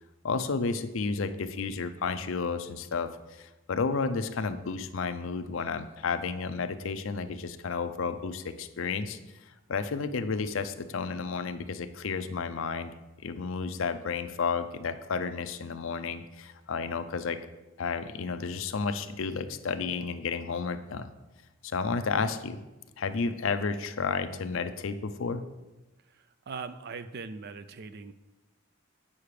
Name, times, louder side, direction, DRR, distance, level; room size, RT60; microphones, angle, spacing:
voice 1, 0.2-9.2 9.5-12.9 13.2-17.4 17.8-21.1 21.6-22.6 23.0-25.4, left 5 dB, 65° left, 10 dB, 0.5 m, -32 dB
voice 2, 26.5-28.1, right 4 dB, 50° right, 12 dB, 0.4 m, -40 dB
8.4 x 5.8 x 4.8 m, 1.1 s
head